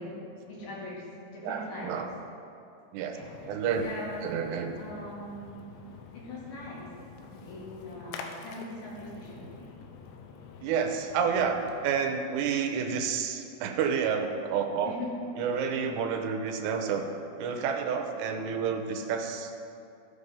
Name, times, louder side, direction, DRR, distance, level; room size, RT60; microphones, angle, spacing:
voice 1, 0.0-1.9 3.1-4.5 4.7-5.7 6.1-6.9 7.3-9.7 14.8-15.3, left 1 dB, 50° left, -6 dB, 3.3 m, -41 dB
voice 2, 1.4-2.1 2.9-3.2 3.5-3.8 4.2-4.8 10.6-14.9 15.4-17.1 17.4-19.5, right 6 dB, 80° right, 4 dB, 2.7 m, -29 dB
Splash splatter, 3.2-11.9, left 5 dB, 85° left, 3.1 m, -47 dB
15.0 x 5.5 x 5.1 m, 2.6 s
omnidirectional pair, 5.0 m